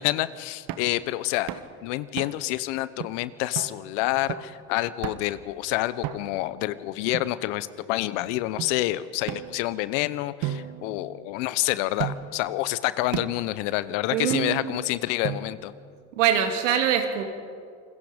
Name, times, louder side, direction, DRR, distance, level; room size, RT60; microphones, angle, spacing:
voice 1, 0.0-1.5 1.8-15.7, left 16 dB, 75° left, 16 dB, 1.0 m, -28 dB
sound 1, 0.7-1.0 1.5-1.7 2.2-2.5 3.0-3.1 3.6-3.8 4.3-4.6 5.0-5.4 6.0-6.5 7.1-7.9 8.6-8.7 9.3-10.0 10.4-11.5 12.0-12.4 13.1-13.5 14.3-14.8 15.2-15.8, right 11 dB, 65° right, 1.5 m, -35 dB
voice 2, 14.1-14.8 16.2-17.2, right 9 dB, 90° right, 5 dB, 2.4 m, -24 dB
28.5 x 21.5 x 5.2 m, 2.2 s
hypercardioid pair, 75°, 37 cm